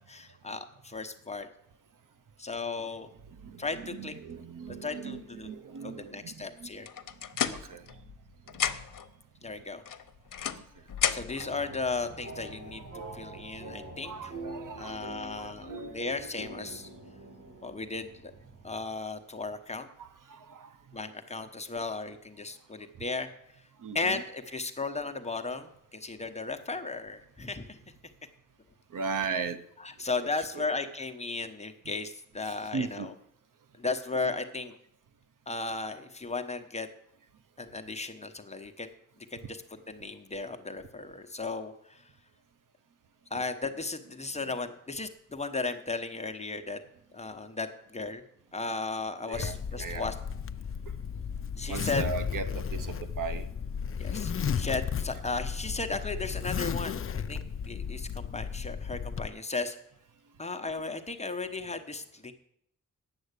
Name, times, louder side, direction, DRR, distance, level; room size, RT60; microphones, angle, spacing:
voice 1, 0.1-1.5 2.4-3.1 3.6-4.1 4.7-5.5 5.8-6.9 9.4-9.8 11.1-14.3 14.7-16.9 17.6-18.3 18.6-19.9 20.9-23.3 23.9-27.8 29.8-33.1 33.8-34.7 35.5-36.9 37.6-38.9 39.3-39.6 39.9-42.0 43.3-46.8 47.1-48.2 48.5-50.2 51.6-52.0 54.0-59.8 60.4-62.3, left 3 dB, 20° left, 6 dB, 1.0 m, -35 dB
voice 2, 3.3-6.9 7.3-8.0 8.5-8.7 10.5-10.6 12.7-13.1 14.0-15.9 20.0-21.0 23.8-24.2 28.9-29.6 30.5-30.6 32.5-33.1 49.2-50.1 51.7-53.5, right 5 dB, 75° right, 11 dB, 0.8 m, -38 dB
sound 1, 6.9-8.2 8.5-9.1 9.9-11.5, left 8 dB, 90° left, 0.8 m, -32 dB
sound 2, 11.3-18.8, right 2 dB, 50° right, 2.0 m, -44 dB
Zipper (clothing), 49.3-59.3, left 7 dB, 40° left, 0.5 m, -34 dB
9.7 x 7.9 x 8.2 m, 0.73 s
wide cardioid pair, 150°, 32 cm